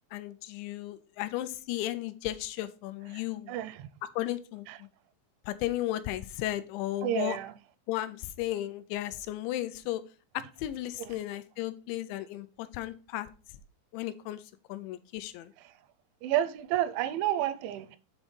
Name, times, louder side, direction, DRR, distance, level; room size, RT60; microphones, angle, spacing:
voice 1, 0.1-3.6 4.2-4.9 5.5-7.4 7.9-10.0 10.3-13.3 13.9-14.4 14.7-15.5, left 14 dB, 85° left, 2.8 m, -35 dB
voice 2, 3.5-3.9 4.7-4.8 7.0-7.5 11.0-11.1 16.2-18.0, right 12 dB, 85° right, 2.9 m, -30 dB
8.1 x 3.7 x 5.2 m
omnidirectional pair, 5.3 m